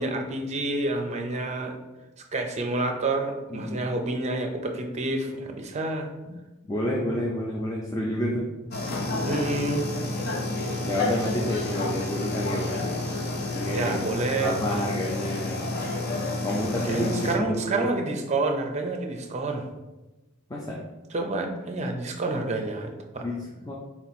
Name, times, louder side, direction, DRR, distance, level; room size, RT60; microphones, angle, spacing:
voice 1, 0.0-1.8 2.3-6.1 9.3-9.9 13.7-14.6 16.8-19.7 21.1-23.2, right 2 dB, 30° right, 4 dB, 0.5 m, -28 dB
voice 2, 6.7-8.5 10.8-13.0 13.5-14.0 14.4-15.7 16.4-17.9 20.5-20.8 23.2-23.7, left 1 dB, 15° left, -3 dB, 0.5 m, -29 dB
sound 1, 8.7-17.4, left 2 dB, 50° left, 0.7 m, -30 dB
4.3 x 2.9 x 4.1 m, 1.1 s
head